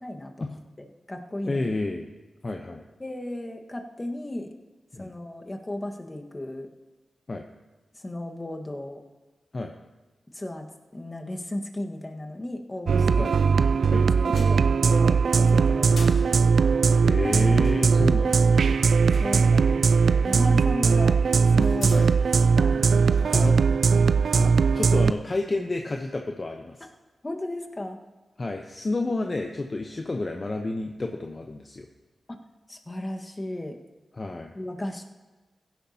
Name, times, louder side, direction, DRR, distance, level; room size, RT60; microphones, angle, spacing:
voice 1, 0.0-1.7 3.0-4.5 5.0-6.7 7.9-9.0 10.3-13.3 14.2-16.3 19.1-21.2 21.5-22.1 22.6-23.5 27.2-28.0 32.7-33.8 34.5-35.0, left 1 dB, 30° left, 3 dB, 1.5 m, -35 dB
voice 2, 1.4-2.1 2.4-2.8 4.9-5.1 7.3-7.4 9.5-9.7 13.1-13.3 13.9-14.1 17.0-18.8 21.9-22.1 23.3-23.6 24.3-26.8 28.4-31.9 34.2-34.5, left 2 dB, 45° left, 3 dB, 0.9 m, -30 dB
sound 1, 12.9-25.1, right 5 dB, 80° right, 0.3 m, -20 dB
sound 2, 14.3-15.1 16.0-16.9 17.6-20.5 20.9-21.0 21.6-22.1 22.9-23.7 25.0-25.1, left 3 dB, 75° left, 1.6 m, -46 dB
16.5 x 10.5 x 2.9 m, 1.2 s
cardioid pair, 40°, 0 cm